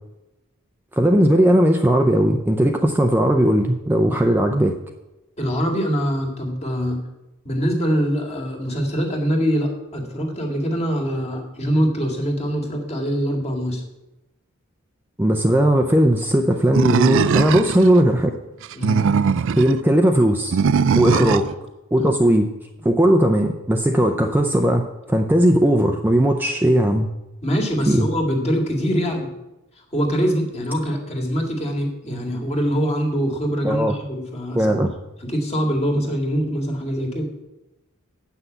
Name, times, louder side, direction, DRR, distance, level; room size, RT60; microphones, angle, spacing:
voice 1, 1.0-4.8 15.2-18.3 18.9-19.0 19.6-20.6 20.9-21.5 21.9-22.5 22.8-27.1 27.9-28.1 33.6-33.9 34.5-34.9, right 1 dB, 10° right, 3 dB, 0.5 m, -17 dB
voice 2, 5.4-7.0 7.4-13.8 17.3-17.5 18.7-19.0 21.1-21.3 22.0-22.1 27.4-29.3 29.9-34.8 35.2-37.3, equal, 30° left, 0 dB, 2.0 m, -23 dB
Animal, 16.7-17.9 18.6-19.7 20.5-21.5, right 6 dB, 65° right, 0.4 m, -19 dB
8.2 x 6.0 x 7.9 m, 0.97 s
head